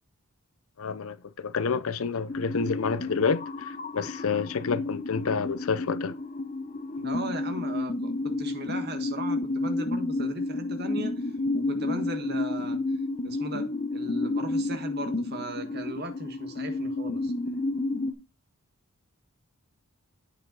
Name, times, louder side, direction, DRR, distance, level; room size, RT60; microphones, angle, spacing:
voice 1, 0.8-6.1, left 5 dB, 70° left, 0.6 m, -29 dB
sound 1, 2.3-18.1, left 2 dB, 35° left, 0.7 m, -31 dB
voice 2, 7.0-12.8 13.2-17.3, right 1 dB, 45° right, 1.5 m, -38 dB
8.5 x 5.1 x 3.9 m
head